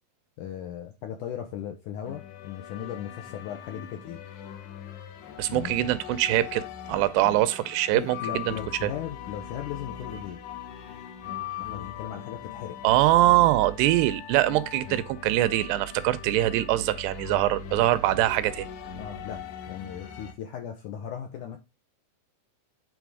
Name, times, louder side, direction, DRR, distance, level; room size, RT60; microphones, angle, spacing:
voice 1, 0.4-4.2 5.5-5.7 7.2-7.4 7.9-10.4 11.6-12.8 19.0-19.4 19.7-21.6, left 9 dB, 75° left, 1.9 m, -37 dB
sound 1, 2.1-20.3, left 10 dB, 90° left, 3.4 m, -41 dB
voice 2, 5.4-8.6 8.8-8.9 12.8-18.7, right 15 dB, 85° right, 2.7 m, -23 dB
9.3 x 3.9 x 4.8 m
omnidirectional pair, 4.8 m